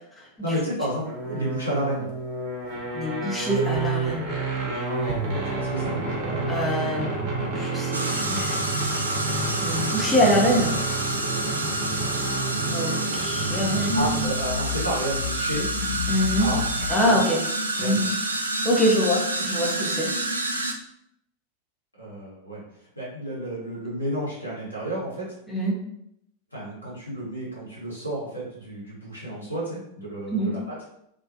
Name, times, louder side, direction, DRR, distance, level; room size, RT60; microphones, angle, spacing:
voice 1, 0.4-2.1 5.4-6.5 13.9-15.7 16.4-16.6 16.9-17.2 17.7-18.0 22.0-22.6 22.9-25.3 26.5-30.7, equal, 90° left, -7 dB, 1.0 m, -31 dB
sound 1, 1.0-14.4, right 3 dB, 40° right, 0.7 m, -29 dB
voice 2, 2.9-4.3 6.5-8.6 9.6-10.7 12.7-14.4 16.1-16.5 16.9-17.4 17.8-18.1 18.6-20.1 25.5-25.8 30.3-30.5, equal, 5° left, -4 dB, 0.7 m, -24 dB
sound 2, 7.9-20.7, right 2 dB, 80° right, 0.3 m, -28 dB
sound 3, 13.7-17.2, left 5 dB, 65° left, 0.5 m, -32 dB
2.4 x 2.3 x 2.7 m, 0.75 s
figure-of-eight pair, 90°, 0 cm